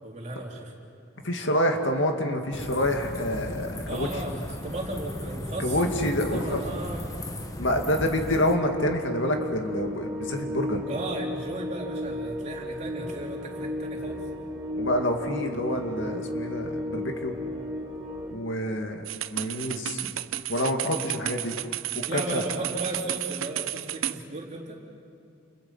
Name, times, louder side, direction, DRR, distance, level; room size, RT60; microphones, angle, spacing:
voice 1, 0.0-0.7 3.9-7.1 10.9-14.2 22.0-24.8, right 2 dB, 35° right, -1 dB, 3.6 m, -35 dB
voice 2, 1.2-4.1 5.6-6.6 7.6-10.8 14.8-17.3 18.3-19.0 19.3-20.1 20.5-21.5 22.0-22.4, left 1 dB, 65° left, 3 dB, 2.3 m, -27 dB
sound 1, 2.5-8.6, left 1 dB, 15° left, 1.3 m, -36 dB
sound 2, 8.3-18.3, left 1 dB, 5° right, 4.2 m, -34 dB
sound 3, 19.1-24.2, right 13 dB, 80° right, 0.7 m, -32 dB
29.5 x 29.5 x 5.7 m, 2.5 s
head